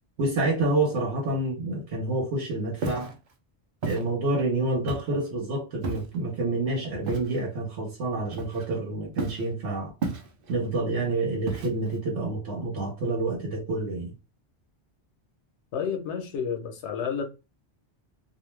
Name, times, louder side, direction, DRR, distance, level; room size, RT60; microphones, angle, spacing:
voice 1, 0.2-3.1 3.8-9.9 10.5-14.1, right 2 dB, 90° right, 1.1 m, -28 dB
Walk footsteps, 2.8-3.1 3.8-4.1 4.9-5.2 5.8-6.2 7.1-7.4 8.3-8.8 9.2-9.5 10.0-10.5 11.5-12.0, right 4 dB, 60° right, 0.7 m, -33 dB
voice 2, 15.7-17.2, left 7 dB, 85° left, 1.0 m, -30 dB
2.6 x 2.1 x 3.1 m
omnidirectional pair, 1.1 m